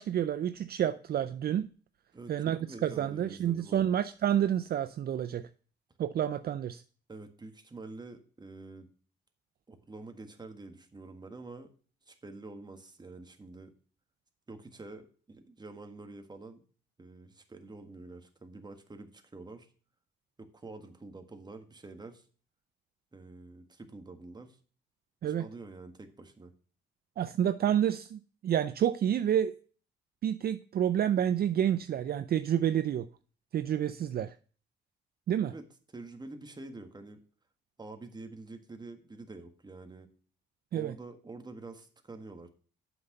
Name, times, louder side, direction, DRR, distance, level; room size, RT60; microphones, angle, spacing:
voice 1, 0.0-1.6 2.3-5.5 6.0-6.8 25.2-25.5 27.2-29.5 30.2-33.1 33.5-34.3 35.3-35.5 40.7-40.9, right 10 dB, 50° right, 0.5 m, -29 dB
voice 2, 2.1-3.9 7.1-8.9 9.7-11.7 12.1-13.7 14.5-16.6 17.0-19.7 20.4-22.2 23.1-24.6 25.2-26.5 35.5-35.6 35.9-37.2 37.8-40.1 40.7-42.5, right 3 dB, 20° right, 1.6 m, -47 dB
7.7 x 6.0 x 5.3 m
cardioid pair, 90°, 20 cm